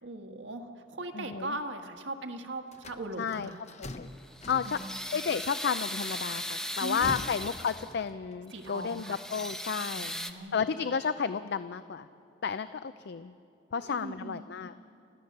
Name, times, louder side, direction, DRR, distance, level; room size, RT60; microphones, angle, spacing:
voice 1, 0.0-3.6 4.6-5.0 6.8-7.3 8.5-9.2 9.8-10.7 13.7-14.4, right 2 dB, 75° right, 4 dB, 1.6 m, -40 dB
voice 2, 1.1-1.6 3.2-3.5 3.8-4.1 4.5-4.8 5.1-10.1 10.5-12.1 12.4-13.3 13.7-14.7, left 6 dB, 65° left, 12 dB, 0.5 m, -32 dB
sound 1, 2.7-5.3 6.6-8.4, left 2 dB, 40° left, 0.9 m, -43 dB
sound 2, 4.1-8.0 8.5-10.3, equal, 5° left, 0.8 m, -38 dB
29.5 x 14.5 x 6.6 m, 2.6 s
head